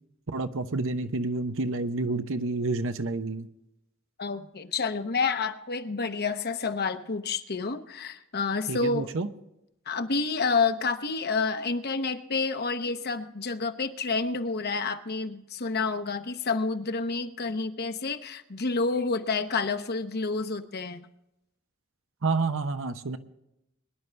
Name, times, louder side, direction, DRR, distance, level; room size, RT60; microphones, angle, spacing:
voice 1, 0.3-3.5 8.7-9.3 22.2-23.2, right 3 dB, 65° right, 9 dB, 0.9 m, -29 dB
voice 2, 4.2-9.1 9.9-21.1, left 4 dB, 50° left, 8 dB, 0.9 m, -29 dB
22.5 x 11.0 x 3.4 m, 0.85 s
head